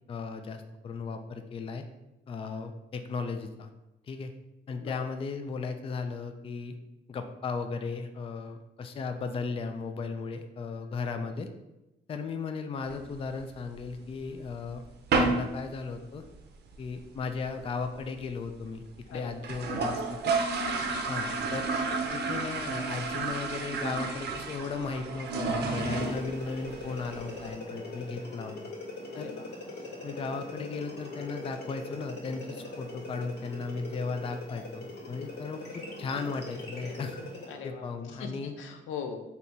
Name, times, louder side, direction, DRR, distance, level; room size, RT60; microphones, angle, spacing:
voice 1, 0.1-1.9 2.3-3.7 4.0-4.3 4.7-6.8 7.1-11.5 12.1-14.8 15.2-16.2 16.8-18.8 19.1-20.3 21.1-21.7 22.1-28.7 29.2-29.3 30.0-37.1 37.6-38.5, left 4 dB, 30° left, 7 dB, 0.3 m, -36 dB
sound 1, 12.9-13.9 14.3-14.4 14.7-14.8 15.1-15.5 15.8-15.9 16.2-16.3 16.6-17.0 17.4-17.5 17.6-17.7 18.0-18.1 18.6-18.7 19.0-19.1 19.3-27.5, right 3 dB, 55° right, 0.6 m, -31 dB
voice 2, 20.6-20.9 29.1-29.4 37.5-37.8 38.2-39.2, left 6 dB, 80° left, 5 dB, 0.5 m, -40 dB
sound 2, 25.8-37.6, left 2 dB, 60° left, 1.0 m, -41 dB
3.3 x 2.8 x 4.1 m, 0.99 s
cardioid pair, 90°, 20 cm